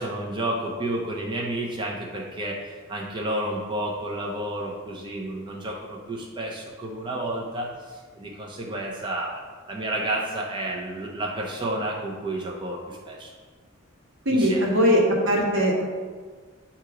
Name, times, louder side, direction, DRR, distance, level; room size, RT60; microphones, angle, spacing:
voice 1, 0.0-9.4 9.7-13.3 14.3-14.7, right 1 dB, 25° right, -3 dB, 0.6 m, -31 dB
voice 2, 14.2-15.8, equal, 70° right, -2 dB, 1.4 m, -20 dB
7.8 x 2.9 x 4.8 m, 1.5 s
head